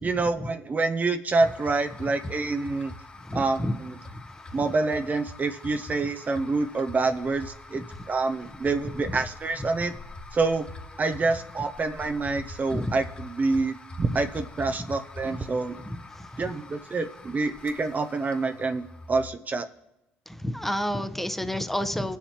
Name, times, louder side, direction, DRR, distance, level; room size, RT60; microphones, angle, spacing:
voice 1, 0.0-2.9 3.3-4.0 4.5-9.9 10.3-10.7 11.0-15.8 16.4-19.7, right 3 dB, 35° right, 8 dB, 0.5 m, -27 dB
sound 1, 1.4-19.3, left 2 dB, 25° left, 1.4 m, -44 dB
voice 2, 3.3-3.7 9.1-9.2 12.7-12.9 15.9-16.4 20.3-22.2, left 1 dB, 5° left, 10 dB, 0.8 m, -30 dB
20.0 x 7.2 x 2.9 m, 0.92 s
supercardioid pair, 70°, 5 cm